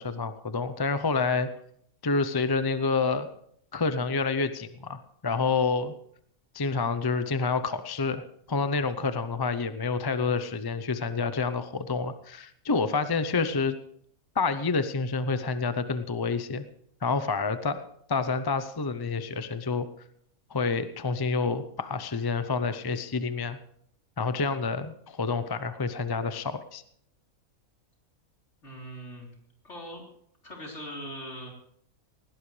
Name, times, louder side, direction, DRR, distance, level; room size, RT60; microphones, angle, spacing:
voice 1, 0.0-1.5 2.0-3.3 3.7-5.9 6.5-13.8 14.4-16.6 17.0-17.8 18.1-19.9 20.5-23.6 24.2-26.8, left 4 dB, 30° left, 11 dB, 0.4 m, -28 dB
voice 2, 28.6-29.3 29.6-30.0 30.4-31.5, equal, 50° left, -1 dB, 4.2 m, -40 dB
19.5 x 17.5 x 3.3 m, 0.67 s
omnidirectional pair, 1.5 m